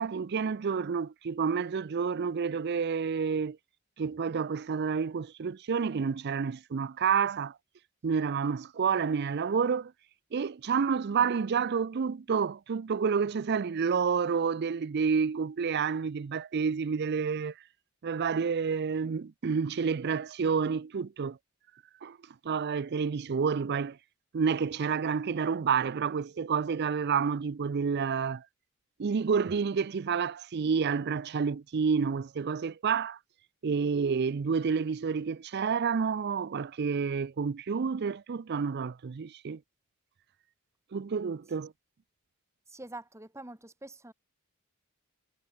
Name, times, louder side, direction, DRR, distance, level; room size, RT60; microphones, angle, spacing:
voice 1, 0.0-3.6 4.0-7.6 8.0-9.9 10.3-17.5 18.0-21.4 22.0-22.2 22.4-24.0 24.3-28.4 29.0-33.2 33.6-39.6 40.9-41.7, right 6 dB, 50° right, 0.4 m, -29 dB
voice 2, 42.7-44.1, right 2 dB, 15° right, 2.8 m, -45 dB
head